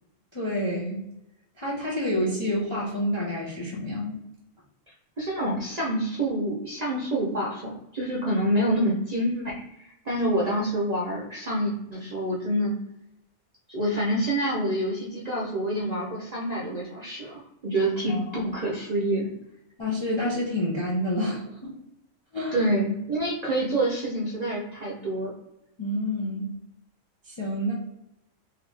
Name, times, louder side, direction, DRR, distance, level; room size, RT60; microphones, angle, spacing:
voice 1, 0.3-1.0 1.6-4.2 18.1-18.5 19.8-21.7 22.3-22.7 25.8-26.5 27.2-27.7, left 1 dB, 40° left, -4 dB, 0.4 m, -28 dB
voice 2, 5.2-9.5 9.8-12.8 13.7-19.3 22.5-25.3, right 1 dB, 50° right, -4 dB, 0.5 m, -27 dB
2.9 x 2.5 x 3.2 m, 0.87 s
omnidirectional pair, 1.4 m